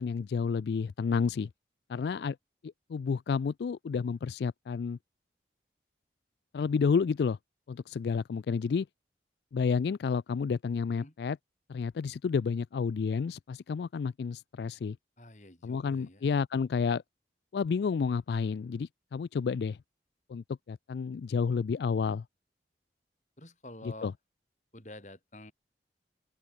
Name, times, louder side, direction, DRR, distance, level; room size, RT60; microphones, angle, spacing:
voice 1, 0.0-1.5 1.9-2.4 2.6-5.0 6.5-7.4 7.7-8.9 9.5-11.4 11.7-15.0 15.6-17.0 17.5-19.8 20.3-22.2 23.8-24.1, left 5 dB, 70° left, 0.3 m, -30 dB
voice 2, 15.2-16.3 23.4-24.1 24.7-25.5, left 1 dB, 40° left, 5.9 m, -48 dB
open air
head